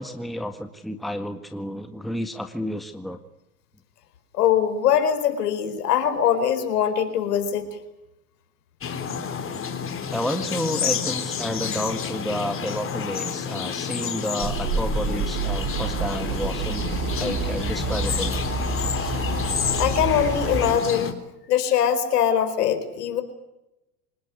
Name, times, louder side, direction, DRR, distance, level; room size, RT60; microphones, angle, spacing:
voice 1, 0.0-3.2 10.1-16.9 17.1-18.4, equal, ahead, 7 dB, 1.7 m, -30 dB
voice 2, 4.3-7.7 19.7-21.1 21.5-23.2, left 9 dB, 80° left, 9 dB, 4.7 m, -22 dB
sound 1, 8.8-21.1, left 6 dB, 25° left, 3.8 m, -30 dB
sound 2, 14.4-20.8, right 4 dB, 40° right, 5.9 m, -28 dB
26.5 x 19.0 x 9.6 m, 0.91 s
hypercardioid pair, 100°, 46 cm